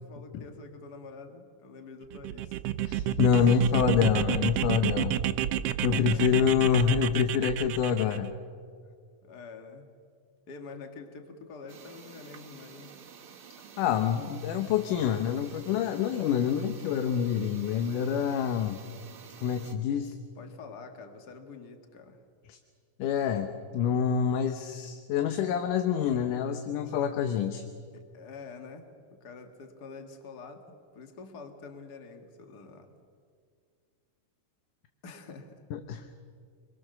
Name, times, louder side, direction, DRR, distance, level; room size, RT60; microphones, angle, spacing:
voice 1, 0.0-3.1 6.1-6.6 9.2-9.9 10.5-13.0 20.4-22.2 27.9-33.0 35.0-35.6, left 4 dB, 35° left, 6 dB, 2.0 m, -47 dB
sound 1, 2.1-8.2, right 12 dB, 85° right, 1.3 m, -30 dB
voice 2, 2.8-5.2 5.8-8.3 13.8-18.8 19.4-20.1 22.5-22.6 23.0-27.6 35.7-36.1, left 7 dB, 80° left, 7 dB, 2.5 m, -26 dB
sound 2, 11.7-19.7, right 7 dB, 50° right, 1.9 m, -50 dB
27.0 x 22.5 x 6.8 m, 2.1 s
omnidirectional pair, 3.7 m